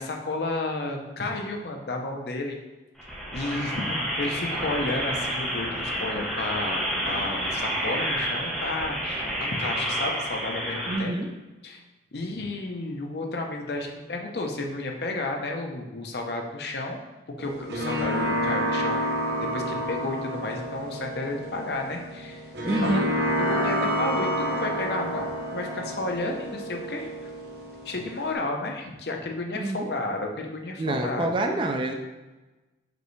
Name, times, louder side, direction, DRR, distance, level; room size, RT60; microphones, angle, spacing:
voice 1, 0.0-2.6 3.3-11.1 11.6-11.8 12.1-17.0 17.4-19.0 19.4-22.5 22.8-23.1 23.4-27.3 27.8-31.3, left 2 dB, 65° left, 2 dB, 0.6 m, -32 dB
sound 1, 3.0-11.0, equal, ahead, 1.0 m, -29 dB
voice 2, 10.9-11.3 22.6-23.0 29.5-29.9 30.8-31.9, right 2 dB, 30° right, 4 dB, 0.3 m, -27 dB
sound 2, 17.4-28.3, equal, 65° right, 0.8 m, -29 dB
5.2 x 3.2 x 3.1 m, 1.1 s
head